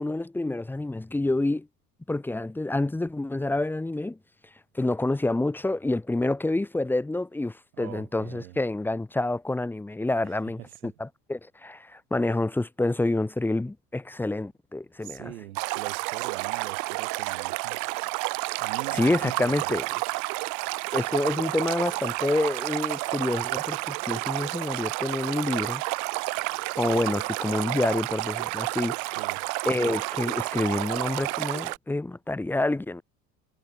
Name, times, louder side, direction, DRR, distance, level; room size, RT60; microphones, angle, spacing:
voice 1, 0.0-1.7 2.1-4.2 4.7-15.3 18.9-19.8 20.9-25.8 26.5-29.2 29.7-33.0, left 2 dB, 5° left, 0.7 m, -28 dB
voice 2, 7.7-8.6 10.2-11.0 15.0-17.9 18.6-19.7 29.2-29.4, right 14 dB, 65° right, 3.9 m, -42 dB
Stream, 15.5-31.8, right 31 dB, 40° right, 0.7 m, -30 dB
figure-of-eight pair, 75°, 47 cm